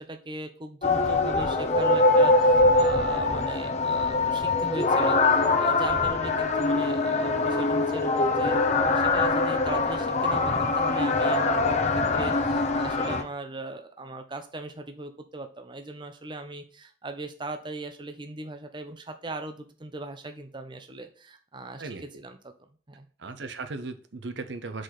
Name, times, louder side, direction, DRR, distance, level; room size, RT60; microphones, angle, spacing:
voice 1, 0.0-23.1, right 2 dB, 25° right, 6 dB, 0.7 m, -39 dB
sound 1, 0.8-13.2, left 3 dB, 35° left, 0.7 m, -23 dB
voice 2, 21.8-22.2 23.2-24.8, right 3 dB, 75° right, 9 dB, 0.8 m, -37 dB
5.2 x 4.2 x 5.8 m, 0.42 s
head